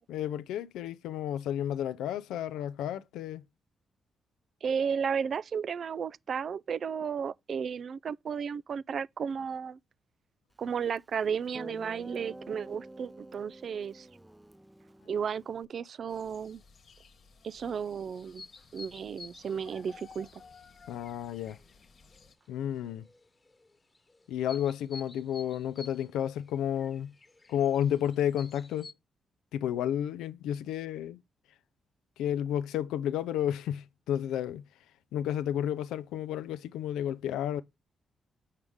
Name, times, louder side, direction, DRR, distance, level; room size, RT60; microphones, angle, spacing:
voice 1, 0.1-3.4 20.9-21.6 22.5-23.1 24.3-27.1 27.5-28.9 29.5-31.2 32.2-34.6 35.1-37.6, left 10 dB, 90° left, 0.5 m, -31 dB
voice 2, 4.6-9.8 10.6-14.1 15.1-16.6 17.4-18.4 18.7-20.3, right 7 dB, 60° right, 0.3 m, -33 dB
Guitar, 11.0-11.1 11.5-15.7, right 1 dB, 10° right, 0.6 m, -48 dB
sound 1, 16.1-22.4, left 5 dB, 65° left, 1.2 m, -56 dB
sound 2, 18.2-28.9, left 3 dB, 30° left, 1.3 m, -53 dB
6.5 x 4.8 x 3.5 m
supercardioid pair, 60°, 0 cm